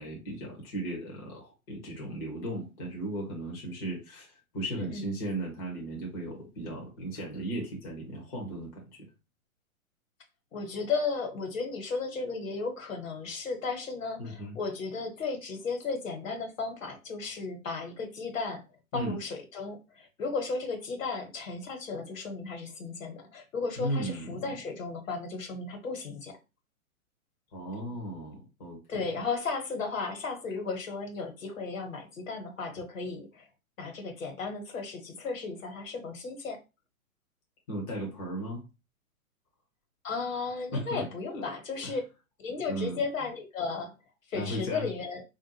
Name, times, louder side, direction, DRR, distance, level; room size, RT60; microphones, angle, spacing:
voice 1, 0.0-9.0 14.2-14.5 18.9-19.2 23.8-24.5 27.5-29.0 37.7-38.6 40.7-41.1 41.4-41.5 41.8-41.9 42.7-43.0 44.3-44.9, right 1 dB, 15° left, 0.5 m, -36 dB
voice 2, 10.5-18.6 18.9-26.4 28.9-33.5 33.8-36.6 40.0-42.0 42.4-43.9 44.3-45.2, left 4 dB, 65° left, 1.2 m, -35 dB
3.5 x 2.5 x 2.7 m
hypercardioid pair, 130°, 43 cm